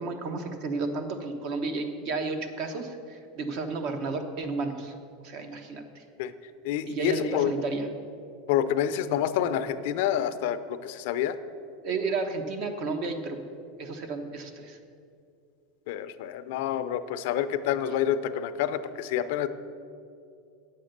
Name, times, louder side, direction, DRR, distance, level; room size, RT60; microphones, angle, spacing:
voice 1, 0.0-4.9 5.2-6.0 6.9-7.9 11.8-13.4 13.8-14.8, right 3 dB, 55° right, 6 dB, 1.1 m, -32 dB
voice 2, 6.6-7.5 8.5-11.4 15.9-19.5, left 10 dB, 70° left, 11 dB, 0.5 m, -28 dB
9.0 x 7.4 x 6.6 m, 2.5 s
supercardioid pair, 135°, 0 cm